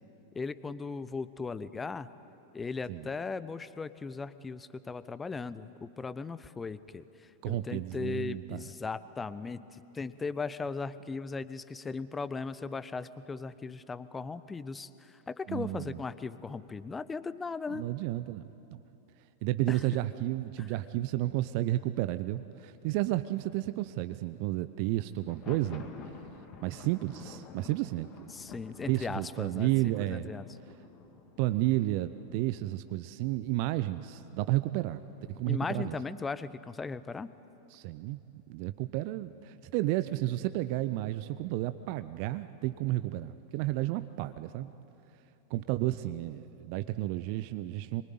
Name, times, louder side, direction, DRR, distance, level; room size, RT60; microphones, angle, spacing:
voice 1, 0.3-2.1 2.5-17.9 19.7-19.8 20.6-20.7 28.3-30.5 35.5-37.3, left 4 dB, 15° left, 15 dB, 0.8 m, -38 dB
voice 2, 7.4-8.7 15.5-16.0 17.7-18.4 18.7-18.8 19.4-25.9 26.6-28.3 28.9-30.3 31.4-35.0 35.3-36.0 37.7-38.2 38.5-44.7 45.5-48.0, right 16 dB, 45° right, 12 dB, 0.7 m, -32 dB
Thunder, 25.2-33.0, left 6 dB, 35° left, 2.4 m, -49 dB
26.5 x 23.5 x 9.4 m, 3.0 s
figure-of-eight pair, 90°, 0 cm